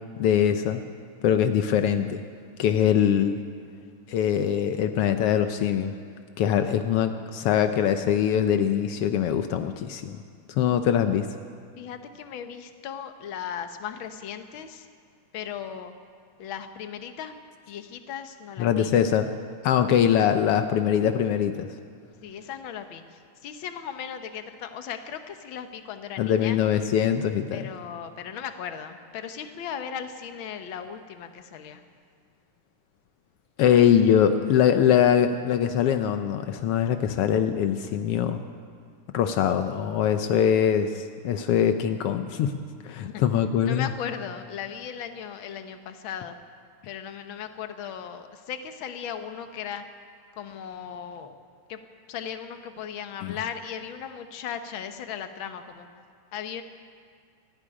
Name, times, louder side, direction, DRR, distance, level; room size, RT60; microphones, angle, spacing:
voice 1, 0.2-0.8 1.2-2.2 2.6-3.4 4.1-6.0 6.4-10.2 10.5-11.3 18.6-19.3 19.6-21.7 26.2-27.6 33.6-38.4 39.1-42.6 42.8-43.9 53.2-53.3, left 9 dB, 85° left, 8 dB, 1.3 m, -22 dB
voice 2, 11.8-14.9 15.3-15.9 16.4-17.3 17.7-18.9 22.2-26.6 27.5-31.8 43.1-43.2 43.6-46.4 46.9-49.8 50.4-51.3 51.7-51.8 52.1-55.9 56.3-56.6, left 8 dB, 60° left, 7 dB, 1.3 m, -37 dB
27.5 x 10.0 x 9.9 m, 2.2 s
omnidirectional pair, 3.6 m